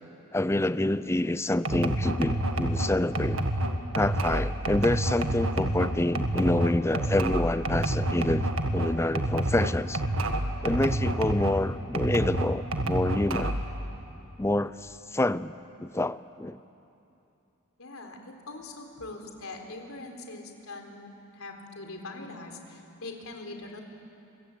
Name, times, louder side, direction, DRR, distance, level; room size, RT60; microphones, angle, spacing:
voice 1, 0.3-3.5 3.9-8.4 8.7-10.0 10.6-13.6 14.4-15.5 15.8-16.6, left 1 dB, 10° left, 14 dB, 0.5 m, -27 dB
sound 1, 1.6-11.6 11.9-13.7, right 1 dB, 65° right, 1.8 m, -28 dB
voice 2, 17.8-21.1 21.3-23.8, left 2 dB, 75° left, 3 dB, 4.0 m, -42 dB
29.0 x 23.5 x 8.7 m, 2.7 s
head